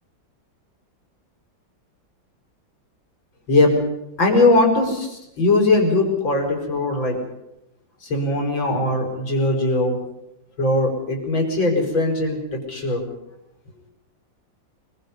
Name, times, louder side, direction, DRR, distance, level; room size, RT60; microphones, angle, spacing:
voice 1, 4.2-7.2 8.0-10.0 10.6-13.0, left 2 dB, 85° left, 2 dB, 5.7 m, -20 dB
25.0 x 22.5 x 5.5 m, 0.88 s
omnidirectional pair, 2.1 m